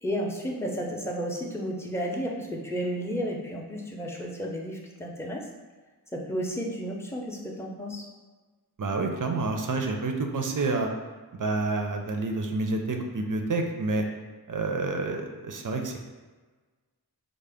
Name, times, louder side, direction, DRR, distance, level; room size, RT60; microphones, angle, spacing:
voice 1, 0.0-5.5 6.1-8.0, equal, 5° left, -2 dB, 0.5 m, -32 dB
voice 2, 8.8-10.9 11.3-14.0 14.5-16.0, right 3 dB, 55° right, 3 dB, 0.5 m, -28 dB
3.8 x 2.0 x 3.4 m, 1.4 s
wide cardioid pair, 50°, 40 cm